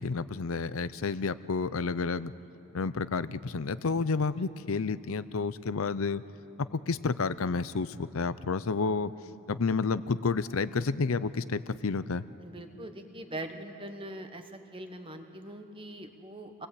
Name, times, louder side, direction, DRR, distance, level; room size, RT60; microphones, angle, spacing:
voice 1, 0.0-2.3 2.7-6.2 6.6-9.1 9.5-12.2, left 4 dB, 75° left, 16 dB, 0.6 m, -30 dB
voice 2, 12.4-16.7, right 1 dB, 25° right, 6 dB, 1.4 m, -42 dB
26.5 x 19.5 x 8.3 m, 3.0 s
head